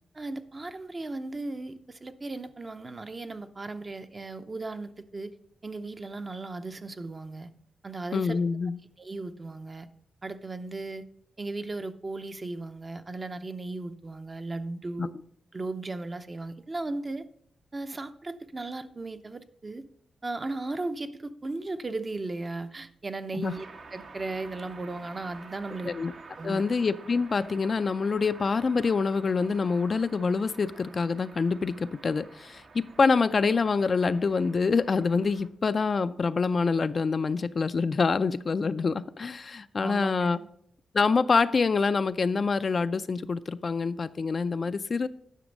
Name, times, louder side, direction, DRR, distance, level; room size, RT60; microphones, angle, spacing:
voice 1, 0.1-5.3 5.6-7.5 7.8-8.4 9.0-9.9 10.2-11.1 11.4-15.1 15.5-17.3 17.7-19.8 20.2-23.7 23.9-25.9 26.4-26.6 39.8-40.5, right 2 dB, 35° right, 9 dB, 0.7 m, -36 dB
voice 2, 8.1-8.8 15.0-15.1 23.3-23.5 25.8-26.1 26.4-40.4 40.9-45.1, left 4 dB, 50° left, 12 dB, 0.4 m, -26 dB
sound 1, 23.4-35.5, right 4 dB, 65° right, 1.2 m, -49 dB
10.0 x 6.1 x 5.2 m, 0.67 s
cardioid pair, 75°, 0 cm